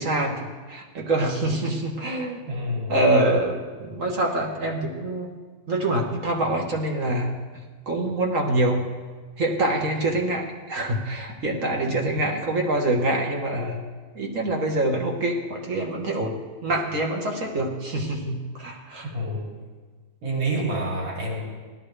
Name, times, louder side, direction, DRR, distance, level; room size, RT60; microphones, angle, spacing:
voice 1, 0.0-2.4 2.9-5.3 5.7-7.3 7.9-8.8 9.4-13.8 14.1-19.1, right 1 dB, 45° right, 0 dB, 1.7 m, -25 dB
voice 2, 2.5-3.0 11.8-12.2 19.1-19.5 20.2-21.4, right 1 dB, 80° right, -4 dB, 3.6 m, -28 dB
19.0 x 13.0 x 3.3 m, 1.4 s
omnidirectional pair, 2.1 m